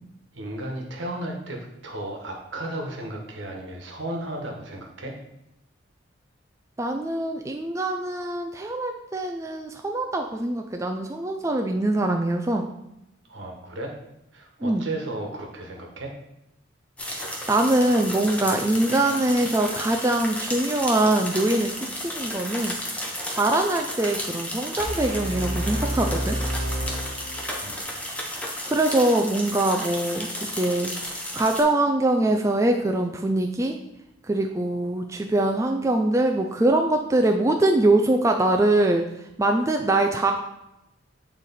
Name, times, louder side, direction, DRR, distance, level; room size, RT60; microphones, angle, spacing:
voice 1, 0.3-5.2 13.3-13.9 14.3-16.1 27.6-27.8, right 1 dB, 70° right, 1 dB, 1.3 m, -34 dB
voice 2, 6.8-12.7 14.6-14.9 17.1-22.8 23.3-26.4 28.7-33.8 34.2-40.3, right 2 dB, 15° right, 3 dB, 0.3 m, -23 dB
sound 1, 17.0-31.6, left 1 dB, 5° left, 0.8 m, -33 dB
sound 2, 24.8-27.8, equal, 35° right, 1.2 m, -29 dB
8.7 x 3.2 x 4.1 m, 0.87 s
head